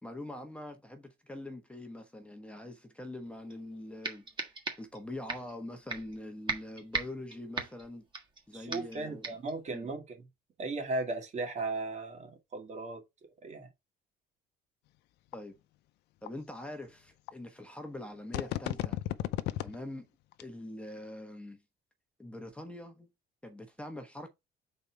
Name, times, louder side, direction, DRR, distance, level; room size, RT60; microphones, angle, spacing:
voice 1, 0.0-4.5 4.8-8.0 8.5-9.3 9.7-9.9 15.3-15.5 16.2-19.0 19.6-20.1 20.4-21.6 22.2-23.1 23.4-24.3, left 1 dB, 5° left, 1.2 m, -43 dB
sound 1, 3.5-3.6 4.0-5.0 5.3-5.5 5.9-6.2 6.5-8.4 8.7-9.0 9.2-9.5, right 3 dB, 30° right, 1.6 m, -37 dB
voice 2, 8.5-10.2 10.6-13.0 13.4-13.7, right 3 dB, 45° right, 2.1 m, -36 dB
sound 2, 15.3-15.4 16.3-16.4 17.3-17.4 18.3-19.7 20.3-20.4, left 15 dB, 85° left, 0.6 m, -33 dB
5.2 x 4.2 x 4.6 m
cardioid pair, 110°, 17 cm